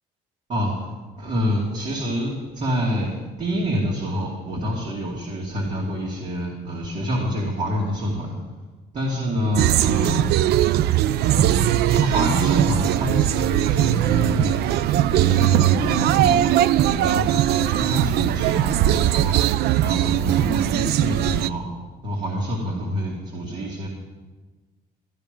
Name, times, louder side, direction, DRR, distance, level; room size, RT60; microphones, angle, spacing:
voice 1, 1.2-8.3 8.9-10.3 11.3-14.6 15.1-16.6 16.8-19.3 19.8-21.6 22.0-23.9, equal, 45° right, -3 dB, 2.6 m, -27 dB
sound 1, 9.5-21.5, right 12 dB, 70° right, 0.4 m, -20 dB
13.0 x 12.0 x 5.3 m, 1.3 s
cardioid pair, 110°, 17 cm